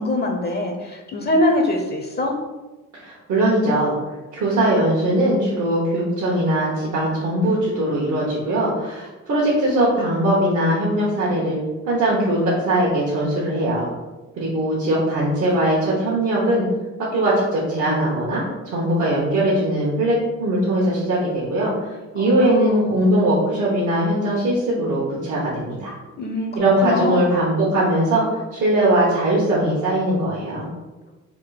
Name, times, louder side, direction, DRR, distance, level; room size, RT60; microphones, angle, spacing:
voice 1, 0.0-2.4 22.1-22.8 26.2-27.3, left 2 dB, 35° left, 3 dB, 0.6 m, -23 dB
voice 2, 2.9-3.9 4.3-11.6 11.9-13.9 14.4-16.6 17.1-21.9 22.1-25.9 26.6-30.7, right 1 dB, 70° right, -7 dB, 1.1 m, -20 dB
3.6 x 2.5 x 3.9 m, 1.2 s
cardioid pair, 90°, 30 cm